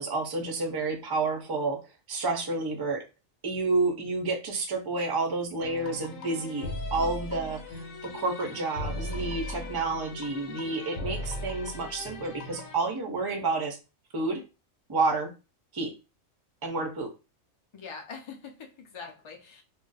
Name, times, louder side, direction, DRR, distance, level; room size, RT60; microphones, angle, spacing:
voice 1, 0.0-1.8 2.1-3.0 3.4-13.8 14.1-14.4 14.9-15.3 15.7-15.9 16.6-17.1, right 3 dB, 40° right, 0.3 m, -30 dB
sound 1, 5.6-12.8, left 1 dB, 75° left, 1.1 m, -38 dB
voice 2, 17.7-19.6, left 5 dB, 45° left, 0.4 m, -43 dB
2.4 x 2.1 x 3.9 m
omnidirectional pair, 1.4 m